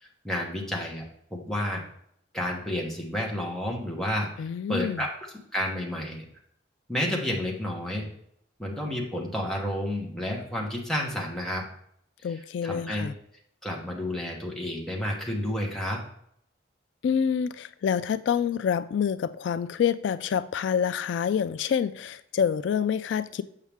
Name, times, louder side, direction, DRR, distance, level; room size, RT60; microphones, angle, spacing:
voice 1, 0.0-1.0 1.3-1.8 2.3-5.1 5.5-6.2 6.9-8.1 8.6-11.6 12.6-13.1 13.6-16.0, left 1 dB, 5° left, 1.2 m, -30 dB
voice 2, 4.4-5.0 12.2-13.2 17.0-23.4, left 7 dB, 80° left, 0.3 m, -27 dB
7.4 x 5.6 x 3.5 m
head